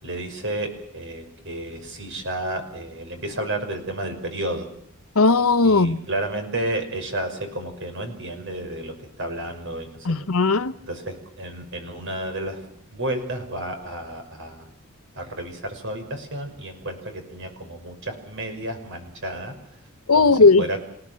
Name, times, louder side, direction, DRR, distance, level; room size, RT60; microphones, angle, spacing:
voice 1, 0.0-4.7 5.6-10.0 10.8-12.6 12.9-14.7 15.1-19.5 20.1-20.8, right 1 dB, 55° right, 5.9 m, -31 dB
voice 2, 5.2-6.0 10.1-10.7 20.1-20.6, left 3 dB, 75° left, 1.0 m, -17 dB
28.0 x 17.5 x 7.6 m
head